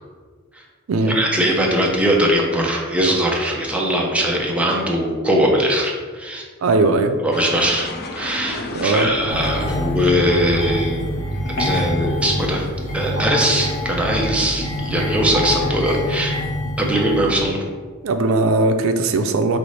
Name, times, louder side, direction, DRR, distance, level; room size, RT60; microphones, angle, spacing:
voice 1, 1.1-6.4 7.2-7.9 8.1-11.1 11.5-12.7 12.9-16.4 16.8-17.6, equal, 5° right, -1 dB, 0.6 m, -20 dB
voice 2, 6.6-7.2 8.7-9.1 18.0-19.6, right 3 dB, 85° right, 8 dB, 0.4 m, -18 dB
sound 1, 7.3-15.7, left 2 dB, 50° left, 0.4 m, -34 dB
sound 2, 9.3-17.4, left 1 dB, 80° left, 1.1 m, -25 dB
3.7 x 3.3 x 4.0 m, 1.5 s
head